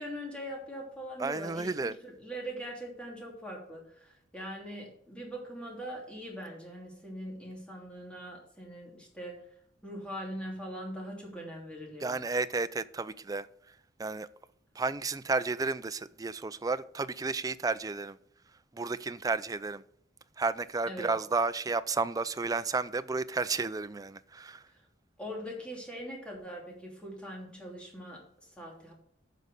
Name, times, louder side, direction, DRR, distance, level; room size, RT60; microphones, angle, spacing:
voice 1, 0.0-9.4 9.8-12.2 20.8-21.2 25.2-28.9, equal, 5° left, 3.0 m, -42 dB
voice 2, 1.2-2.0 12.0-13.5 14.0-14.3 14.8-18.2 18.7-19.8 20.4-24.6, right 3 dB, 20° right, 0.4 m, -32 dB
9.3 x 5.5 x 6.5 m
head